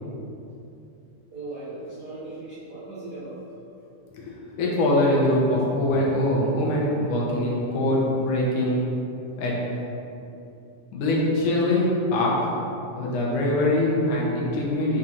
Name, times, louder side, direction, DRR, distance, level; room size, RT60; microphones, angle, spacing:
voice 1, 1.3-3.4 4.0-4.1 4.4-4.5, right 2 dB, 80° right, -10 dB, 0.8 m, -38 dB
voice 2, 4.6-8.8 9.4-9.6 10.9-12.4 13.0-15.0, left 1 dB, 75° left, -4 dB, 2.6 m, -23 dB
7.5 x 3.8 x 4.3 m, 2.7 s
omnidirectional pair, 3.8 m